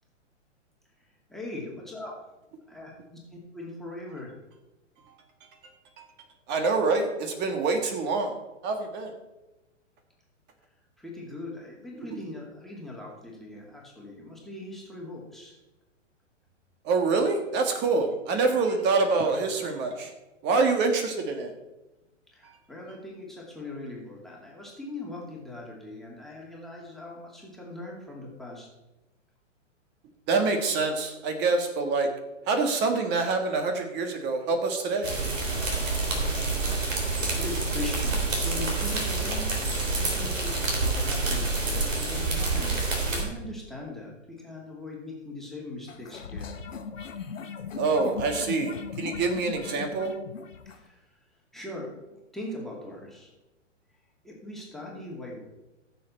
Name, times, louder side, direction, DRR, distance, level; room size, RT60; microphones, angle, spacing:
voice 1, 1.3-2.1 2.7-2.9 3.3-4.3 11.0-15.5 22.3-28.7 36.3-36.4 37.3-39.5 39.9-42.8 43.1-46.5 50.7-51.0 51.5-52.0 52.3-53.3 54.2-55.5, left 2 dB, ahead, -3 dB, 2.4 m, -40 dB
voice 2, 6.5-8.3 8.6-9.1 16.8-20.1 20.4-21.5 30.3-32.1 32.5-35.1 47.8-50.1, right 3 dB, 30° right, 5 dB, 1.6 m, -26 dB
sound 1, 35.0-43.2, right 3 dB, 80° right, 3.6 m, -27 dB
sound 2, 45.9-50.8, left 6 dB, 90° left, 1.2 m, -38 dB
15.0 x 7.1 x 4.4 m, 1.0 s
hypercardioid pair, 125°, 38 cm